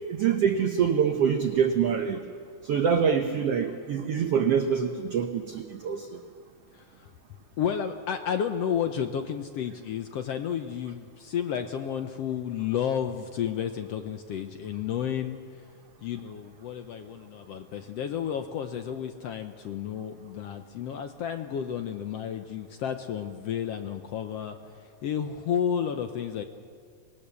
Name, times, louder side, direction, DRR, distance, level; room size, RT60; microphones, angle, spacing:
voice 1, 0.1-2.2 2.6-6.2, right 7 dB, 75° right, 5 dB, 1.4 m, -25 dB
voice 2, 6.7-7.1 7.6-15.4 16.0-24.6 25.0-26.4, left 8 dB, 80° left, 7 dB, 1.4 m, -31 dB
25.0 x 20.5 x 7.0 m, 2.2 s
omnidirectional pair, 3.9 m